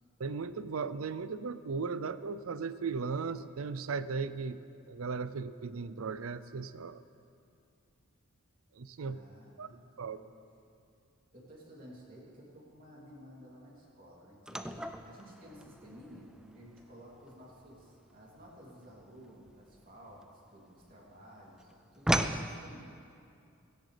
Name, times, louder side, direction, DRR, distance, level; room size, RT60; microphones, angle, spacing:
voice 1, 0.2-4.6 4.9-7.0 8.8-9.2 9.6-9.7 10.0-10.2, right 5 dB, 75° right, 14 dB, 0.5 m, -37 dB
voice 2, 9.0-10.3 11.3-14.6 15.0-23.0, equal, 40° right, -4 dB, 3.0 m, -54 dB
sound 1, 14.5-20.9 21.2-22.5, right 1 dB, 5° right, 0.3 m, -37 dB
17.0 x 16.5 x 3.4 m, 2.5 s
head